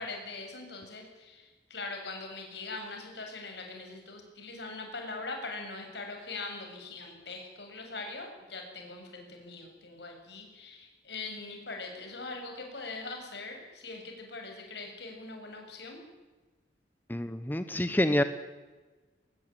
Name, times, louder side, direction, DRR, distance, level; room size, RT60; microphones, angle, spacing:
voice 1, 0.0-16.0, left 3 dB, 65° left, 3 dB, 7.2 m, -42 dB
voice 2, 17.1-18.2, left 1 dB, 10° left, 10 dB, 0.9 m, -27 dB
22.5 x 20.5 x 9.0 m, 1.3 s
head